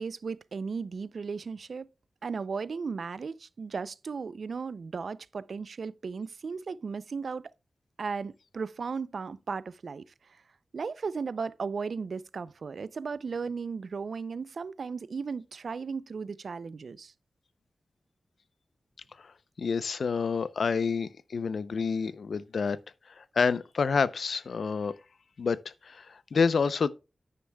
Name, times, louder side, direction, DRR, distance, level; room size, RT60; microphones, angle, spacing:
voice 1, 0.0-1.9 2.2-7.4 8.0-10.0 10.7-17.1, right 5 dB, 75° right, 0.4 m, -36 dB
voice 2, 19.6-22.8 23.2-24.9 25.4-26.9, left 5 dB, 80° left, 0.5 m, -28 dB
9.7 x 9.5 x 2.2 m
wide cardioid pair, 100°, 0 cm